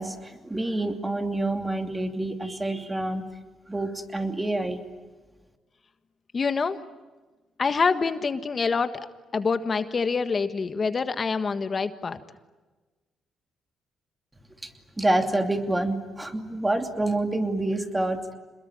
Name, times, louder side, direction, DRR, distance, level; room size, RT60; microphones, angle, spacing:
voice 1, 0.0-3.2 3.7-4.8 14.6-14.7 15.0-18.3, right 2 dB, 15° right, 6 dB, 2.8 m, -27 dB
voice 2, 6.3-6.8 7.6-8.9 9.3-12.2, left 4 dB, 40° left, 10 dB, 1.5 m, -26 dB
27.5 x 21.5 x 10.0 m, 1.2 s
cardioid pair, 90°, 0 cm